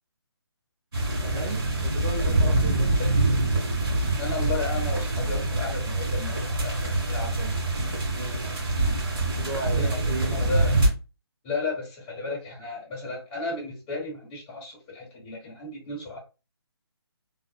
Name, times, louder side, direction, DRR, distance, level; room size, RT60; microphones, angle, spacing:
sound 1, 0.9-10.9, right 2 dB, 55° right, 1.7 m, -25 dB
voice 1, 1.1-3.0 8.1-8.6 9.3-10.7, right 2 dB, 35° right, 0.6 m, -35 dB
voice 2, 4.1-7.6 9.6-10.8 11.4-16.2, left 3 dB, 20° left, 1.3 m, -34 dB
3.1 x 2.4 x 2.3 m
figure-of-eight pair, 155°, 14 cm